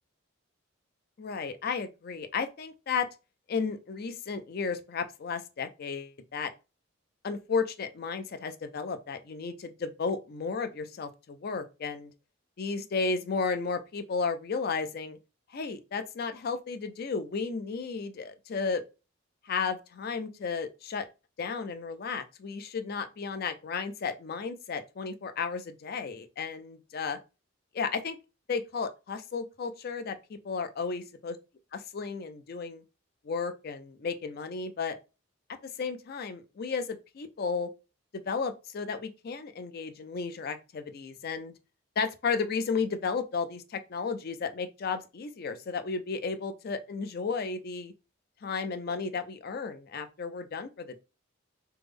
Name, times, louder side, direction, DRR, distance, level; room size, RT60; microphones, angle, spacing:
voice 1, 1.2-3.1 3.5-6.5 7.2-12.1 12.6-15.2 15.5-18.8 19.4-21.1 21.4-27.2 27.7-28.2 28.5-31.4 31.7-32.8 33.2-35.0 35.6-37.7 38.3-41.5 42.0-47.9 48.4-51.0, left 5 dB, 50° left, 0.4 m, -33 dB
3.3 x 2.0 x 3.4 m
head